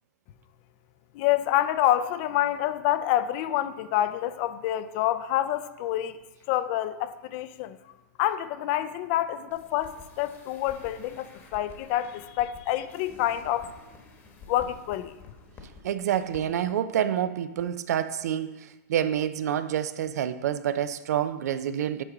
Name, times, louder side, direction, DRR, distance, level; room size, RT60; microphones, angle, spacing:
voice 1, 1.1-6.2 6.5-7.9 8.2-11.3 11.5-13.7 14.5-15.1, left 13 dB, 45° left, 0.4 m, -27 dB
sound 1, 9.5-15.8 16.1-16.4 16.7-16.8, left 4 dB, 25° left, 1.1 m, -49 dB
voice 2, 15.8-22.0, right 10 dB, 80° right, 0.5 m, -28 dB
8.5 x 4.7 x 3.8 m
supercardioid pair, 145°, 9 cm